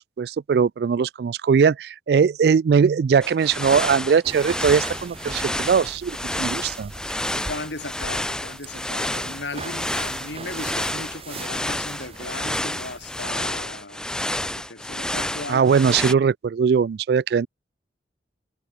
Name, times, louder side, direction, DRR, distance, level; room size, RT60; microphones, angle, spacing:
voice 1, 0.2-6.9 15.5-17.5, right 6 dB, 60° right, 0.3 m, -20 dB
sound 1, 3.2-16.1, left 1 dB, 5° left, 0.8 m, -30 dB
sound 2, 4.2-13.3, right 2 dB, 30° right, 2.7 m, -40 dB
voice 2, 7.3-16.0, left 2 dB, 75° left, 4.6 m, -36 dB
head